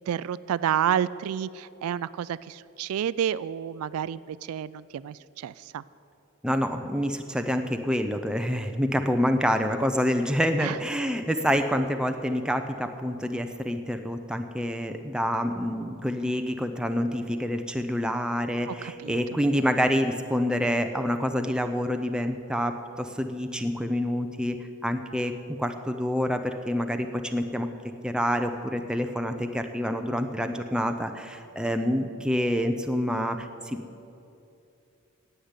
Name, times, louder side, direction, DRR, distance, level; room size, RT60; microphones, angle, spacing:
voice 1, 0.0-5.8 10.6-10.8 18.8-19.2, right 9 dB, 80° right, 18 dB, 0.3 m, -30 dB
voice 2, 6.4-27.7 28.0-33.8, equal, 5° right, 6 dB, 0.5 m, -27 dB
10.0 x 8.0 x 9.7 m, 2.7 s
head